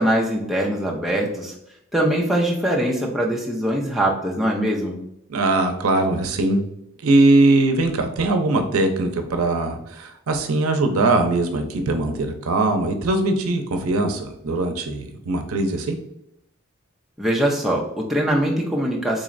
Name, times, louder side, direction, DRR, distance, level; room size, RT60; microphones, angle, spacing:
voice 1, 0.0-1.5 1.9-5.0 17.2-19.2, right 1 dB, ahead, -3 dB, 0.4 m, -22 dB
voice 2, 5.3-6.6 7.0-16.0, right 2 dB, 90° right, 6 dB, 0.5 m, -21 dB
3.8 x 3.0 x 2.5 m, 0.80 s
head